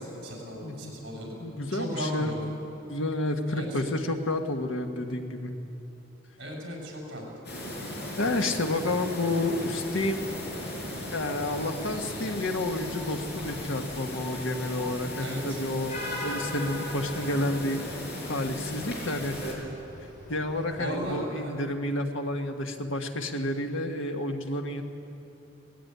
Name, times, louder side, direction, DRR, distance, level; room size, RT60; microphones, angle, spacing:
voice 1, 0.0-1.4 1.7-2.5 3.5-3.8 6.4-7.2 15.2-15.6 20.8-21.5, equal, 60° right, -1 dB, 6.9 m, -36 dB
voice 2, 0.6-0.9 1.4-2.3 2.9-5.5 8.2-10.3 11.1-17.8 18.3-19.4 20.3-24.8, left 1 dB, 85° left, 4 dB, 1.6 m, -30 dB
sound 1, 7.4-19.5, left 1 dB, 55° left, 5.3 m, -36 dB
Vehicle horn car horn honking / Traffic noise roadway noise, 9.8-21.0, equal, 40° left, 5.8 m, -48 dB
19.0 x 16.0 x 9.4 m, 3.0 s
head